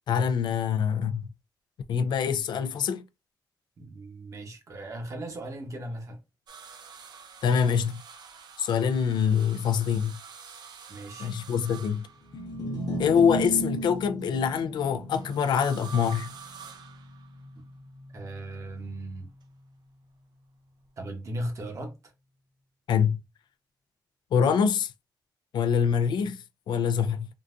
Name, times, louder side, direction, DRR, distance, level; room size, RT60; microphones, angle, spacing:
voice 1, 0.1-1.3 1.9-3.0 7.4-8.0 8.6-10.1 11.2-12.1 13.0-16.3 22.9-23.2 24.3-24.9 25.5-27.3, left 7 dB, 90° left, 0.3 m, -25 dB
voice 2, 3.8-6.2 10.9-11.3 18.1-19.3 21.0-22.0, right 1 dB, 45° right, 1.0 m, -37 dB
sound 1, 6.5-12.7 15.1-17.6 18.7-19.4 20.9-21.0, right 6 dB, 70° right, 0.5 m, -47 dB
sound 2, 12.2-18.6, equal, 60° left, 0.7 m, -36 dB
3.8 x 2.3 x 2.4 m
wide cardioid pair, 150°, 7 cm